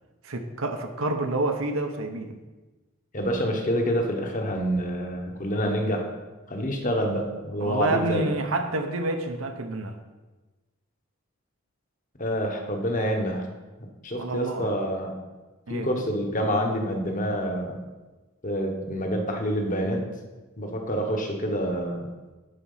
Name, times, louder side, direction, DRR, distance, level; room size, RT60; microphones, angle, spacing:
voice 1, 0.2-2.4 7.6-9.9 14.2-14.7 15.7-15.9, right 2 dB, 75° right, 5 dB, 0.9 m, -28 dB
voice 2, 3.1-6.0 6.5-8.3 12.2-13.5 14.0-15.1 15.7-17.8 18.4-20.0 20.6-22.0, equal, 40° left, 2 dB, 1.2 m, -27 dB
10.5 x 4.3 x 5.7 m, 1.2 s
head